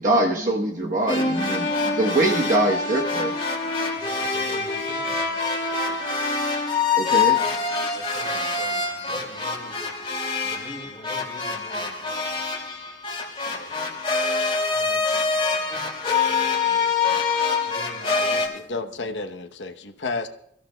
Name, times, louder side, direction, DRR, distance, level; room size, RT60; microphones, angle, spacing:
voice 1, 0.0-3.3 7.0-7.4, right 2 dB, 45° right, 0 dB, 1.1 m, -23 dB
sound 1, 1.1-18.5, left 4 dB, 30° left, 2.4 m, -25 dB
voice 2, 4.0-6.0 7.9-10.1 10.4-12.4 13.4-13.7 14.3-17.2 17.6-18.9, left 1 dB, 5° left, -6 dB, 4.8 m, -45 dB
voice 3, 18.0-20.3, left 3 dB, 85° left, 6 dB, 0.9 m, -32 dB
26.5 x 14.0 x 2.3 m, 0.73 s
head